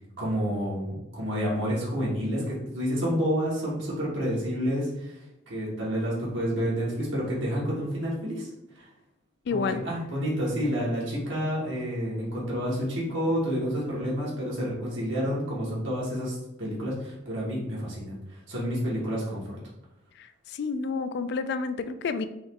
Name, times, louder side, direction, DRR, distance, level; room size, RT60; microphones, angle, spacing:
voice 1, 0.2-8.5 8.7-8.9 9.5-19.6, equal, 70° right, -6 dB, 1.4 m, -29 dB
voice 2, 9.5-9.8 20.2-22.2, left 4 dB, 55° left, 10 dB, 0.3 m, -30 dB
3.8 x 3.0 x 3.6 m, 0.91 s
head